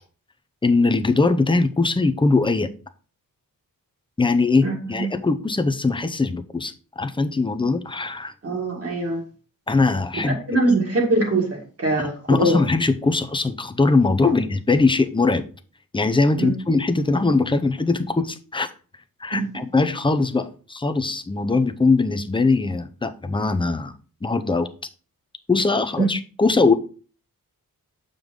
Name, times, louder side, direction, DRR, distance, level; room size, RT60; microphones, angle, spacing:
voice 1, 0.6-2.7 4.2-8.3 9.7-10.3 12.0-15.4 15.9-18.7 19.2-23.9 24.2-24.7 25.5-26.7, left 3 dB, 15° left, 0.6 m, -21 dB
voice 2, 4.6-5.1 8.4-9.2 10.3-12.6 14.2-14.3 16.4-16.5 19.3-19.5 26.0-26.1, right 2 dB, 40° right, 1.9 m, -22 dB
7.8 x 5.2 x 3.7 m
wide cardioid pair, 150°, 35 cm